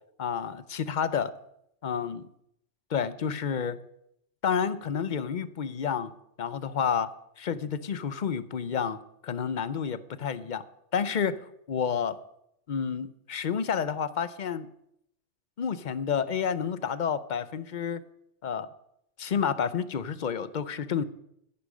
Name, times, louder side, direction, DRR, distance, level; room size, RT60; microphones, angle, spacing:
voice 1, 0.2-1.3 1.8-2.3 2.9-3.8 4.4-6.1 6.4-7.1 7.4-9.0 9.2-10.6 10.9-12.1 12.7-14.7 15.6-18.0 18.4-18.7 19.2-21.0, left 7 dB, 50° left, 14 dB, 0.7 m, -30 dB
10.5 x 9.9 x 6.4 m, 0.77 s
omnidirectional pair, 1.2 m